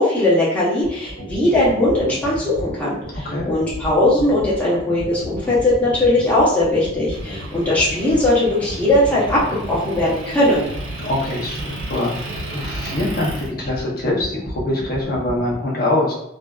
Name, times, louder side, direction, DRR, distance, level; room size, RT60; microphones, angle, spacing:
voice 1, 0.0-10.7, left 1 dB, 5° left, -9 dB, 0.7 m, -19 dB
sound 1, 0.8-15.6, equal, 80° left, 1.3 m, -33 dB
voice 2, 3.1-3.5 11.0-16.1, left 1 dB, 50° left, -4 dB, 0.7 m, -24 dB
Motor vehicle (road) / Engine, 7.1-13.5, right 2 dB, 90° right, 0.6 m, -35 dB
2.5 x 2.3 x 2.3 m, 0.80 s
head